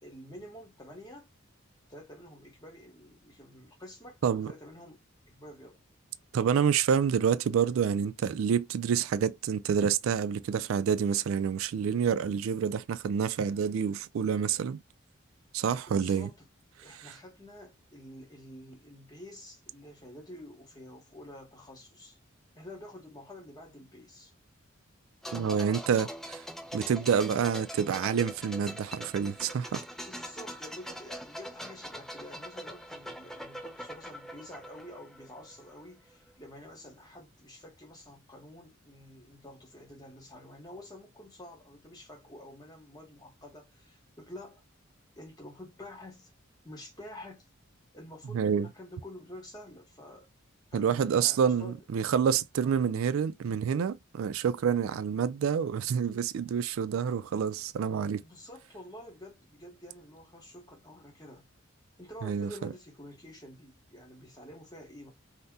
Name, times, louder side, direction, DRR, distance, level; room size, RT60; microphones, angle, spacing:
voice 1, 0.0-1.3 1.9-5.8 15.9-16.5 16.8-22.2 22.6-24.3 25.3-26.2 30.0-44.6 45.2-46.3 46.6-47.5 47.9-50.3 50.7-51.8 58.2-61.5 62.0-65.1, left 1 dB, 20° left, 0.9 m, -49 dB
voice 2, 6.3-14.8 15.5-16.3 17.0-17.1 25.3-26.1 26.7-29.8 48.3-48.7 50.7-58.2 62.2-62.7, right 7 dB, 80° right, 0.3 m, -28 dB
sound 1, 25.2-35.9 36.1-36.3, equal, ahead, 0.3 m, -43 dB
2.7 x 2.1 x 3.5 m
head